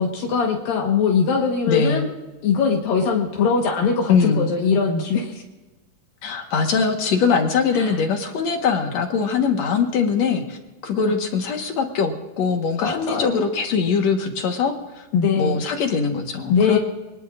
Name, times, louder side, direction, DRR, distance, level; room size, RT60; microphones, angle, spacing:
voice 1, 0.0-2.1 2.4-5.4 7.7-7.9 10.9-11.1 12.8-13.5 15.1-15.6 16.5-16.8, left 5 dB, 75° left, 0 dB, 3.1 m, -21 dB
voice 2, 1.7-2.1 4.1-4.5 6.2-15.1 15.4-16.8, left 5 dB, 55° left, 4 dB, 2.3 m, -22 dB
26.5 x 19.5 x 2.6 m, 1.2 s
omnidirectional pair, 4.1 m